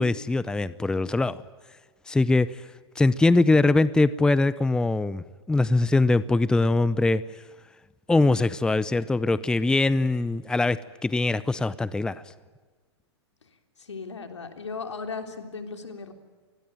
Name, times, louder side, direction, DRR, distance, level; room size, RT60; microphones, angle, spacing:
voice 1, 0.0-1.4 2.1-2.6 3.0-7.2 8.1-12.2, left 2 dB, 5° left, 17 dB, 0.7 m, -22 dB
voice 2, 13.8-16.1, left 4 dB, 85° left, 6 dB, 3.6 m, -36 dB
26.0 x 20.5 x 9.1 m, 1.4 s
hypercardioid pair, 115°, 14 cm